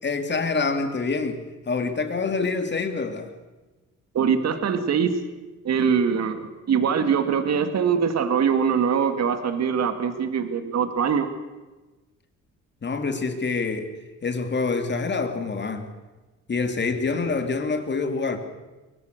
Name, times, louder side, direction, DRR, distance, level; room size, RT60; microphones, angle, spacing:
voice 1, 0.0-3.3 12.8-15.9 16.5-18.4, left 4 dB, 35° left, 7 dB, 2.9 m, -26 dB
voice 2, 4.1-5.1 5.6-11.3, right 7 dB, 60° right, 9 dB, 2.2 m, -23 dB
23.5 x 19.0 x 6.7 m, 1.2 s
cardioid pair, 90°, 30 cm